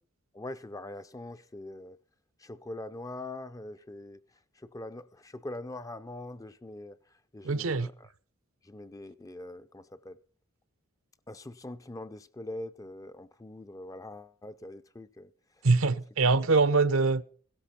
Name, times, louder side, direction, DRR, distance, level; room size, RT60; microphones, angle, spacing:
voice 1, 0.3-2.0 2.4-4.2 4.5-8.1 8.6-10.2 11.3-15.3 15.6-15.7 16.2-16.3, left 1 dB, 15° left, 0.5 m, -43 dB
voice 2, 7.4-7.9 15.6-17.2, right 3 dB, 70° right, 0.8 m, -23 dB
16.5 x 13.5 x 4.4 m
head